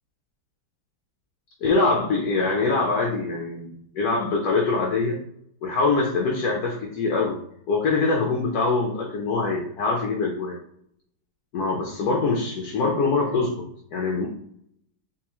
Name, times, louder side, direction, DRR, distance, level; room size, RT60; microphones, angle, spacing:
voice 1, 1.6-5.2 5.6-7.4 7.7-10.6 11.5-14.3, left 3 dB, 70° left, -1 dB, 0.9 m, -24 dB
3.5 x 3.5 x 3.0 m, 0.73 s
omnidirectional pair, 2.1 m